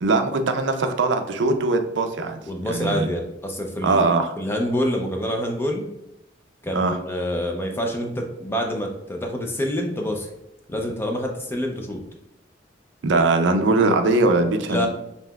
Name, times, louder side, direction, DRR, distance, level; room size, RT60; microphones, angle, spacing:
voice 1, 0.0-3.1 3.8-4.3 6.7-7.0 13.0-14.9, right 3 dB, 70° right, 7 dB, 0.4 m, -21 dB
voice 2, 2.5-4.1 4.4-5.9 6.6-10.3 10.7-12.0 14.7-14.9, equal, 10° left, 2 dB, 0.4 m, -26 dB
5.5 x 2.9 x 2.3 m, 0.84 s
head